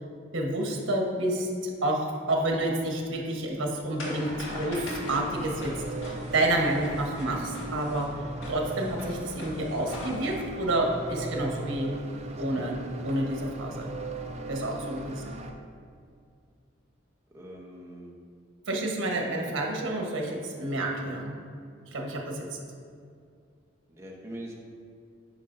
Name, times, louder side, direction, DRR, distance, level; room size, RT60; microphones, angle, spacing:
voice 1, 0.3-5.7 6.0-8.1 8.5-11.9 12.4-12.8 13.0-13.9 14.5-15.3 18.7-21.4 21.9-22.6, right 1 dB, 80° right, 0 dB, 1.1 m, -29 dB
sound 1, 3.3-10.5, left 1 dB, 80° left, 1.6 m, -42 dB
sound 2, 4.2-15.5, right 2 dB, 35° right, 0.4 m, -38 dB
voice 2, 17.3-18.2 23.9-24.6, right 1 dB, 15° right, -2 dB, 0.8 m, -42 dB
9.7 x 5.2 x 2.6 m, 2.3 s
head